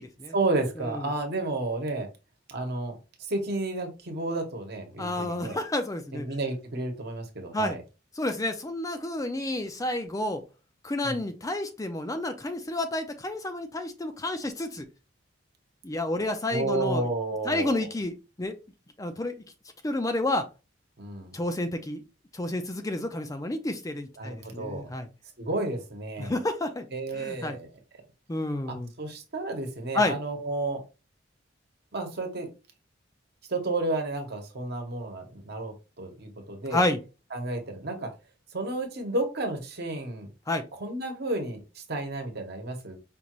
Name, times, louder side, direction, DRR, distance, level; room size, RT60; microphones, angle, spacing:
voice 1, 0.3-2.1 2.5-3.0 3.3-5.6 6.1-7.8 11.0-11.2 16.5-17.8 21.0-21.3 24.2-24.9 25.4-26.3 26.9-27.7 28.7-30.8 31.9-32.5 33.5-36.8 37.3-38.1 38.5-40.3 40.8-43.0, right 2 dB, 55° right, 4 dB, 1.1 m, -31 dB
voice 2, 5.0-6.3 7.5-7.8 8.2-10.4 10.8-14.9 15.8-17.1 17.4-18.5 19.0-19.3 19.8-20.4 21.3-22.0 22.3-25.1 26.2-26.9 27.1-27.6 28.3-28.9 29.9-30.2 36.7-37.0 40.5-40.6, left 2 dB, 15° left, 7 dB, 0.4 m, -30 dB
5.2 x 2.4 x 3.0 m, 0.30 s
head